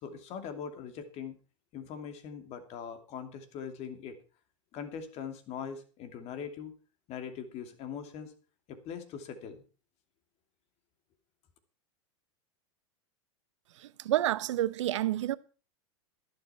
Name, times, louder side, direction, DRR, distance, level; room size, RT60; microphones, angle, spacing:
voice 1, 0.0-1.4 1.7-4.2 4.7-6.7 7.1-8.3 8.7-9.6, left 7 dB, 40° left, 2.8 m, -41 dB
voice 2, 13.7-15.4, right 13 dB, 70° right, 0.9 m, -29 dB
12.5 x 11.5 x 4.4 m
hypercardioid pair, 105°, 16 cm